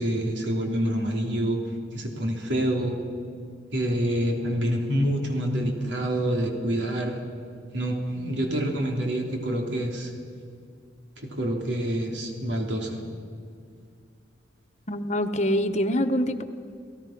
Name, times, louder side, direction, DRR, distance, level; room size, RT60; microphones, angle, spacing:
voice 1, 0.0-1.6 1.9-3.0 3.7-7.2 7.7-10.1 11.2-13.0, right 1 dB, 80° right, 1 dB, 3.5 m, -27 dB
voice 2, 14.9-16.4, equal, 40° left, 7 dB, 1.1 m, -25 dB
29.0 x 17.5 x 6.0 m, 2.3 s
head